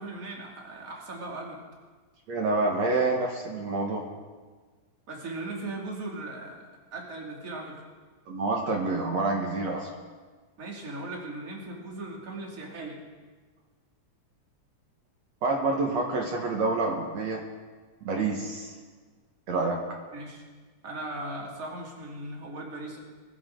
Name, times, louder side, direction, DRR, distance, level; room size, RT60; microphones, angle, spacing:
voice 1, 0.0-1.6 5.1-6.6 6.9-7.8 10.6-13.0 20.1-20.4 20.8-23.0, right 2 dB, 25° right, -2 dB, 2.6 m, -38 dB
voice 2, 2.3-4.1 8.3-9.9 15.4-17.4 18.0-18.7 19.5-19.8, right 3 dB, 60° right, 0 dB, 2.4 m, -27 dB
20.5 x 14.5 x 3.9 m, 1.4 s
omnidirectional pair, 3.7 m